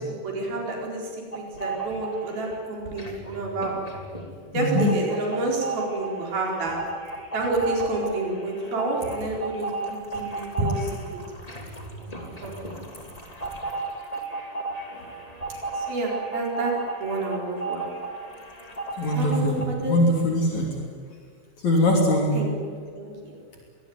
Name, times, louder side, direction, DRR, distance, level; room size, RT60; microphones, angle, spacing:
voice 1, 0.0-3.7 4.5-6.8 7.3-10.9 12.0-12.9 15.7-16.7 17.0-17.8 19.1-20.0 22.3-22.5 22.9-23.4, right 2 dB, 80° right, -1 dB, 6.3 m, -29 dB
sound 1, 1.3-2.5 2.9-19.7, right 3 dB, 10° left, 2.3 m, -34 dB
voice 2, 4.5-4.9 14.9-15.1 19.0-20.7 21.6-22.4, left 1 dB, 50° left, -1 dB, 4.4 m, -22 dB
24.5 x 20.0 x 9.6 m, 2.1 s
omnidirectional pair, 4.2 m